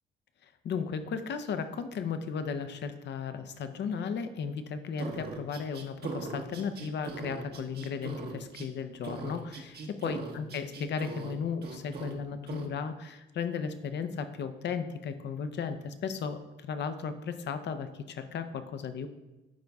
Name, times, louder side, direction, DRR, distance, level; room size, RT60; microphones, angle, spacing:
voice 1, 0.6-19.1, left 6 dB, 60° left, 9 dB, 0.7 m, -35 dB
sound 1, 5.0-8.7 9.0-11.3 11.6-12.1 12.5-12.7, right 3 dB, 55° right, 1.1 m, -40 dB
11.5 x 4.0 x 3.5 m, 1.0 s
cardioid pair, 90°, 20 cm